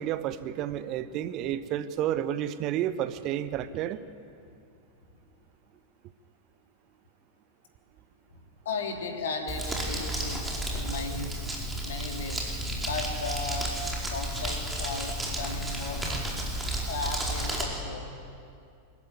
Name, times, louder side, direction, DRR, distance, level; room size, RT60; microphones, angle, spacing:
voice 1, 0.0-4.0, right 11 dB, 40° right, 13 dB, 0.9 m, -31 dB
voice 2, 8.6-11.3 11.8-12.4 12.7-13.8 14.0-16.0 16.9-18.0, left 3 dB, 60° left, 3 dB, 3.3 m, -35 dB
Crumpling crinkling, 9.5-17.6, right 1 dB, 10° right, 4.9 m, -32 dB
25.0 x 14.5 x 9.8 m, 2.4 s
figure-of-eight pair, 90°, 0 cm